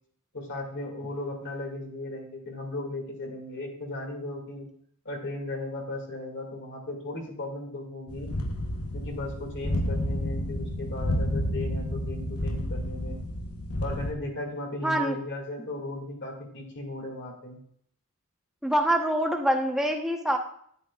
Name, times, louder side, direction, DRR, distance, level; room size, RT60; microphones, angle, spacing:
voice 1, 0.3-4.7 5.0-8.3 8.9-13.2 13.8-17.6, left 2 dB, 55° left, 2 dB, 2.3 m, -36 dB
sound 1, 8.1-14.1, left 1 dB, 80° left, 1.0 m, -30 dB
voice 2, 14.8-15.2 18.6-20.4, right 1 dB, ahead, 2 dB, 1.0 m, -25 dB
10.5 x 9.5 x 2.4 m, 0.64 s
head